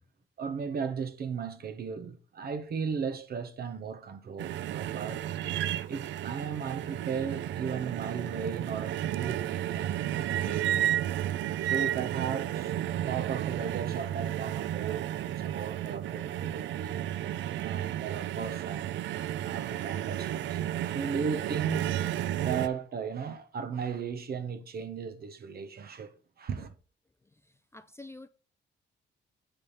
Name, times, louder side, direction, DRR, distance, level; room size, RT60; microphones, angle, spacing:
voice 1, 0.4-5.2 5.9-10.9 11.6-17.0 17.6-26.7, right 6 dB, 50° right, 1.0 m, -36 dB
sound 1, 4.4-22.7, right 12 dB, 70° right, 0.4 m, -32 dB
voice 2, 27.2-28.3, left 2 dB, 15° left, 0.4 m, -49 dB
8.8 x 3.5 x 5.6 m
cardioid pair, 90°, 20 cm